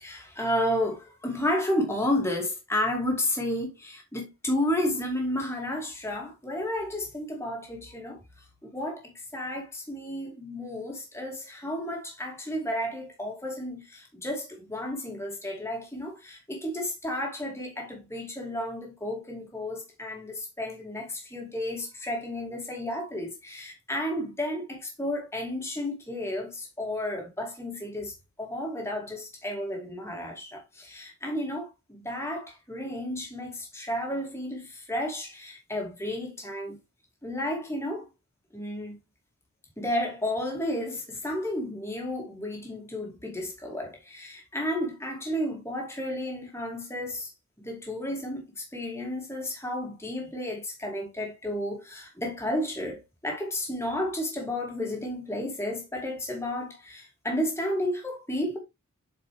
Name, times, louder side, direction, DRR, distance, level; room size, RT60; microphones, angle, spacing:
voice 1, 0.0-28.1 28.4-36.8 37.2-38.1 38.5-39.0 39.8-47.3 47.6-58.6, left 1 dB, 10° left, 2.4 m, -32 dB
7.9 x 5.2 x 3.3 m
head